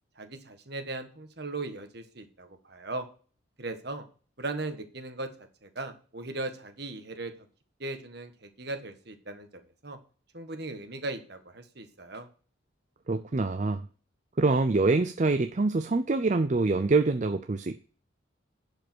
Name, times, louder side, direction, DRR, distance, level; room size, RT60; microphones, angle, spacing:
voice 1, 0.2-3.1 3.6-4.1 4.4-7.5 7.8-9.5 9.8-10.0 10.3-12.3, right 2 dB, 55° right, 7 dB, 1.6 m, -38 dB
voice 2, 13.1-13.9 14.4-17.7, right 3 dB, 35° right, 9 dB, 0.5 m, -25 dB
11.0 x 5.3 x 6.3 m, 0.40 s
head